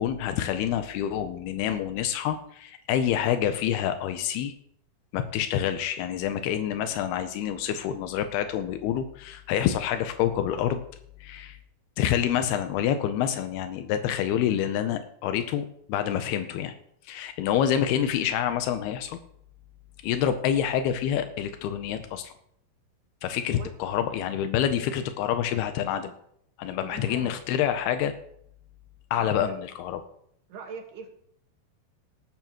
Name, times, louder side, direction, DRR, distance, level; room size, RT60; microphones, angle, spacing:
voice 1, 0.0-4.5 5.1-10.8 11.2-11.6 12.0-16.7 17.0-19.2 20.0-22.3 23.2-26.1 26.6-28.1 29.1-30.0, left 10 dB, 85° left, 8 dB, 2.7 m, -27 dB
voice 2, 26.8-27.4 29.1-29.5 30.5-31.1, right 6 dB, 80° right, 3 dB, 3.7 m, -42 dB
19.0 x 9.0 x 3.1 m, 0.69 s
omnidirectional pair, 4.7 m